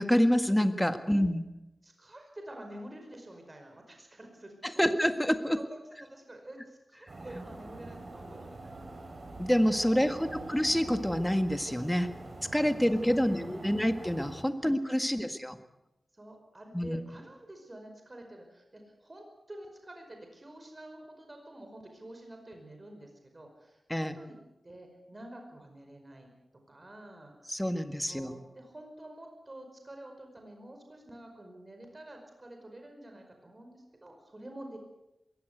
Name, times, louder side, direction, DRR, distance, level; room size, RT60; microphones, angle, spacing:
voice 1, 0.0-1.4 4.6-5.6 9.4-12.1 12.5-15.6 16.7-17.0 23.9-24.2 27.5-28.3, equal, 5° left, 8 dB, 1.8 m, -27 dB
voice 2, 1.8-4.9 5.5-8.8 9.9-10.6 12.7-13.9 14.6-14.8 15.1-15.4 16.1-24.4 24.6-26.3 26.7-27.5 28.1-34.8, right 1 dB, 30° right, 4 dB, 5.2 m, -48 dB
sound 1, 7.1-14.4, right 2 dB, 55° right, 4.4 m, -45 dB
21.5 x 17.0 x 8.1 m, 0.92 s
wide cardioid pair, 75°, 0 cm